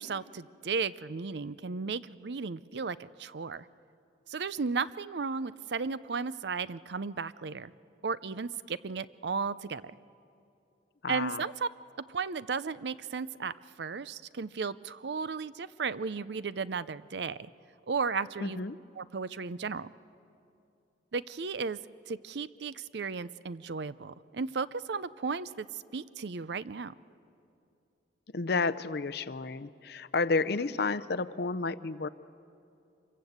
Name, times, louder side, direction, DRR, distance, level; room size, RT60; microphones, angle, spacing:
voice 1, 0.0-3.7 4.3-7.7 8.0-10.0 11.1-11.7 12.1-17.5 17.9-18.6 19.0-19.9 21.1-21.8 22.1-26.9, right 5 dB, 65° right, 16 dB, 0.6 m, -35 dB
voice 2, 11.0-11.4 18.4-18.8 28.3-32.1, left 3 dB, 60° left, 16 dB, 0.6 m, -31 dB
25.5 x 23.0 x 8.0 m, 2.6 s
head